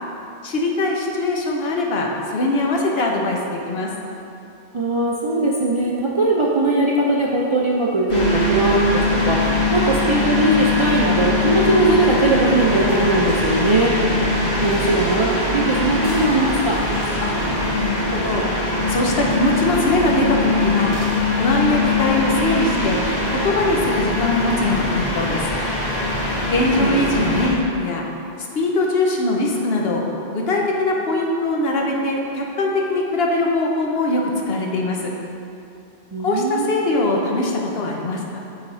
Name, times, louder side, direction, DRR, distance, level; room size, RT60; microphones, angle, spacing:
voice 1, 0.4-3.9 17.2-18.4 18.9-20.9 21.4-23.0 23.4-25.5 26.5-28.0 28.4-30.0 30.3-35.1 36.2-38.4, left 2 dB, 70° left, 0 dB, 1.0 m, -22 dB
voice 2, 4.7-14.0 14.6-16.8 26.8-27.0 36.1-36.7, right 2 dB, 45° right, -3 dB, 0.4 m, -20 dB
sound 1, 8.1-27.5, left 2 dB, 40° left, 1.6 m, -22 dB
7.9 x 4.0 x 4.2 m, 2.7 s
omnidirectional pair, 1.1 m